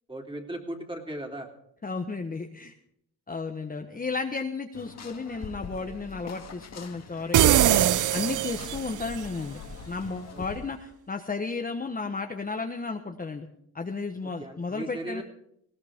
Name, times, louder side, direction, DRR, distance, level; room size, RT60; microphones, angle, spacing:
voice 1, 0.1-1.5 10.3-10.4 14.2-15.2, right 1 dB, 10° right, 2 dB, 3.0 m, -37 dB
voice 2, 1.8-2.7 3.3-9.6 9.9-13.5 13.7-15.2, left 4 dB, 20° left, 4 dB, 1.2 m, -33 dB
sound 1, 4.7-10.6, left 5 dB, 40° left, 1.8 m, -43 dB
sound 2, 7.3-9.2, right 12 dB, 50° right, 0.6 m, -21 dB
20.0 x 17.0 x 3.7 m, 0.71 s
cardioid pair, 95°, 41 cm